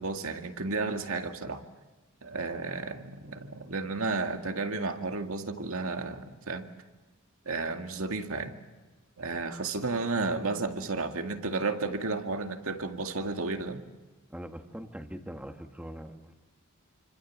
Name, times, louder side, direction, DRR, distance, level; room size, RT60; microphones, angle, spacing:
voice 1, 0.0-1.6 2.2-6.7 7.5-8.6 9.2-13.8, right 3 dB, 70° right, 5 dB, 2.2 m, -32 dB
voice 2, 14.3-16.3, equal, 5° right, 5 dB, 1.7 m, -42 dB
29.5 x 25.5 x 7.4 m, 1.2 s
head